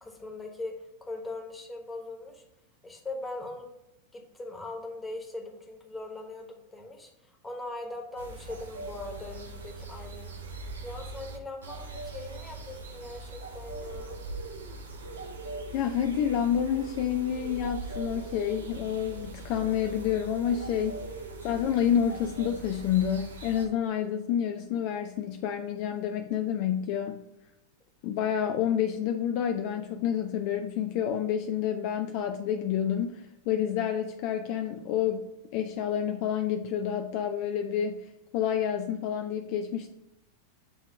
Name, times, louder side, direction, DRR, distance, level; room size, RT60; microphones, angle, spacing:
voice 1, 0.0-2.4 2.8-3.7 4.1-14.2, left 2 dB, 10° left, 2 dB, 1.3 m, -41 dB
sound 1, 8.2-23.7, right 2 dB, 70° right, 0.8 m, -41 dB
voice 2, 15.7-21.0 21.4-27.2 28.0-35.2 35.5-38.1 38.3-39.9, left 9 dB, 45° left, 5 dB, 0.4 m, -29 dB
7.6 x 3.0 x 4.9 m, 0.86 s
figure-of-eight pair, 90°, 0 cm